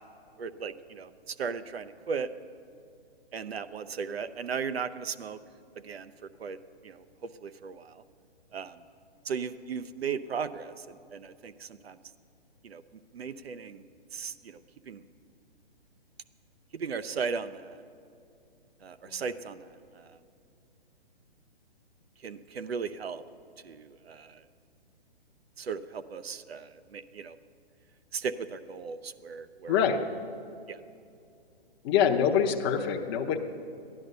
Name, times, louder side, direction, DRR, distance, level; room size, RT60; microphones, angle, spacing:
voice 1, 0.4-2.3 3.3-5.4 5.8-6.1 6.4-6.6 6.8-7.0 7.4-8.0 8.5-8.8 9.2-12.0 12.6-12.8 13.1-14.6 14.9-15.0 16.7-17.8 18.8-19.7 19.9-20.2 22.2-23.2 23.6-24.4 25.6-27.4 28.1-29.8 30.7-30.8, right 6 dB, 70° right, 11 dB, 0.7 m, -36 dB
voice 2, 29.7-30.0 31.8-33.4, left 8 dB, 25° left, 1 dB, 0.7 m, -25 dB
14.0 x 11.0 x 6.7 m, 2.6 s
hypercardioid pair, 135°, 32 cm